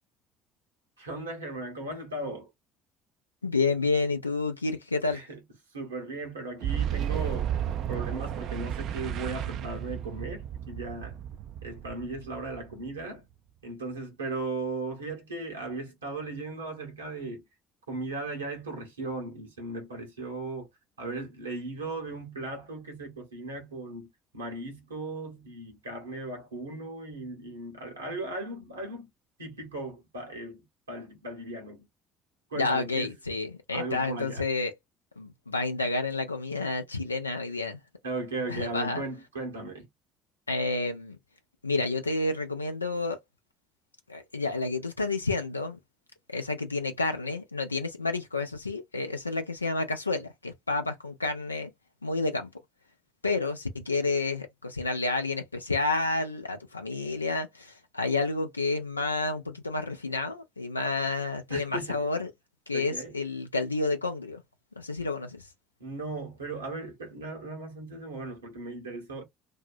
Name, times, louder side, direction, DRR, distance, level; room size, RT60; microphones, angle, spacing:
voice 1, 1.0-2.5 5.0-5.4 5.7-11.2 11.6-13.2 13.6-17.4 17.9-20.7 21.0-29.1 29.4-31.9 32.5-33.1 33.7-34.4 38.0-39.9 61.5-62.0 62.7-63.2 65.8-69.2, right 2 dB, 80° right, 1.0 m, -37 dB
voice 2, 3.4-5.2 32.5-34.7 35.2-37.8 38.5-39.0 40.5-41.2 41.6-43.2 44.1-45.8 46.3-51.7 52.0-52.5 53.2-62.3 62.7-64.4 64.8-65.5, left 3 dB, 85° left, 0.3 m, -30 dB
Boom, 6.6-13.2, right 10 dB, 50° right, 0.3 m, -33 dB
2.6 x 2.1 x 2.4 m
figure-of-eight pair, 55°, 0 cm